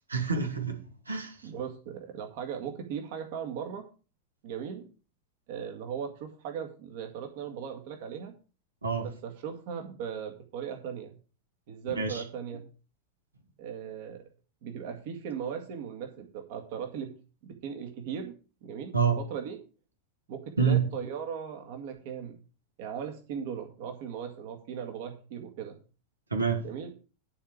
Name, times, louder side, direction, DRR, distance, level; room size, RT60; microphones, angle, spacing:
voice 1, 0.1-1.4 8.8-9.0 12.0-12.2 18.9-19.1 20.6-20.9 26.3-26.6, right 6 dB, 80° right, 2.2 m, -26 dB
voice 2, 1.4-3.8 4.4-4.9 5.5-8.3 9.0-11.1 11.7-12.6 13.6-14.2 14.6-17.1 17.4-18.3 18.6-19.6 20.3-22.4 22.8-25.8 26.6-26.9, right 7 dB, 50° right, 1.9 m, -38 dB
11.0 x 5.0 x 7.5 m
figure-of-eight pair, 90°, 0 cm